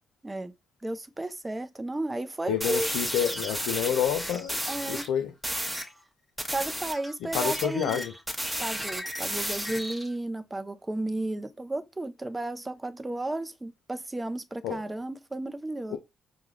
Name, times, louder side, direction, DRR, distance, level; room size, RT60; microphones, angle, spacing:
voice 1, 0.8-2.9 4.7-5.1 6.5-8.0 8.6-16.0, right 1 dB, 20° right, 0.6 m, -33 dB
voice 2, 2.5-4.6 4.9-5.3 7.2-8.1 14.6-14.8 15.9-16.0, left 10 dB, 75° left, 0.4 m, -28 dB
sound 1, 2.6-5.1 5.4-5.9 6.4-10.1, equal, 5° right, 1.0 m, -33 dB
4.7 x 2.2 x 2.9 m
hypercardioid pair, 40°, 0 cm